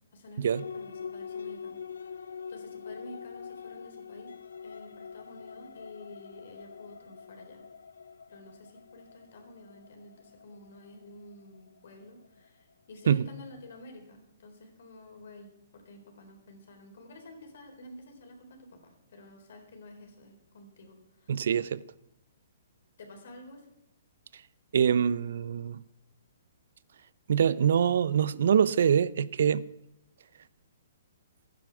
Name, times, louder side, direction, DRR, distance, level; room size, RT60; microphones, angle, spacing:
voice 1, 0.1-4.3 4.6-7.6 8.3-21.4 23.0-23.7, left 1 dB, 65° left, 4.0 m, -50 dB
sound 1, 0.5-12.5, left 6 dB, 85° left, 0.6 m, -44 dB
voice 2, 21.3-21.8 24.7-25.8 27.3-29.6, right 8 dB, 70° right, 0.5 m, -24 dB
13.0 x 10.0 x 7.0 m
hypercardioid pair, 140°, 0 cm